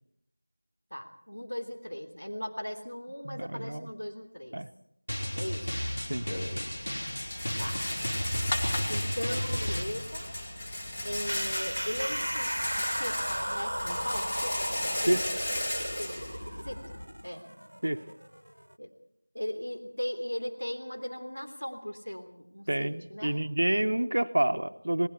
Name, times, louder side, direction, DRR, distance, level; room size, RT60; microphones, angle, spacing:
voice 1, 0.9-4.6 5.3-5.8 7.6-7.8 8.9-10.3 11.0-14.6 14.9-15.1 16.0-16.2 16.6-16.8 17.2-17.5 18.8-18.9 19.3-23.4, equal, 65° left, 6 dB, 3.2 m, -38 dB
voice 2, 3.2-3.9 4.5-4.7 6.1-6.3 15.1-15.2 17.8-18.0 22.7-25.1, right 1 dB, 50° right, 10 dB, 1.0 m, -28 dB
Drum, 5.1-9.8, equal, 45° left, 3.8 m, -33 dB
Rattle, 6.0-17.0, left 1 dB, 20° left, 2.5 m, -36 dB
sound 1, 11.2-18.7, equal, 75° right, 1.1 m, -35 dB
28.5 x 20.0 x 4.6 m, 0.74 s
figure-of-eight pair, 175°, 0 cm